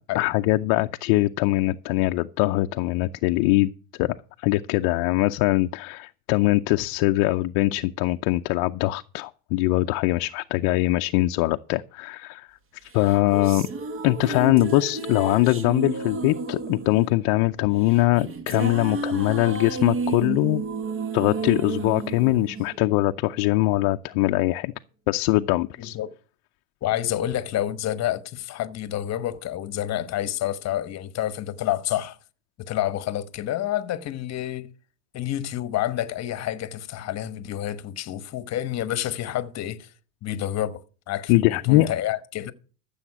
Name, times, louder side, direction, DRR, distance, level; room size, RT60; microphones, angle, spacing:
voice 1, 0.2-12.5 12.8-13.7 14.0-20.6 21.1-24.7 25.1-26.0 41.3-41.9, left 18 dB, 55° left, 0.6 m, -22 dB
sound 1, 12.9-23.4, right 4 dB, 30° right, 1.1 m, -31 dB
voice 2, 25.8-26.1 26.8-32.2 32.6-34.7 35.1-39.9 40.2-42.5, left 12 dB, 35° left, 1.1 m, -29 dB
14.5 x 7.2 x 5.9 m
supercardioid pair, 130°, 46 cm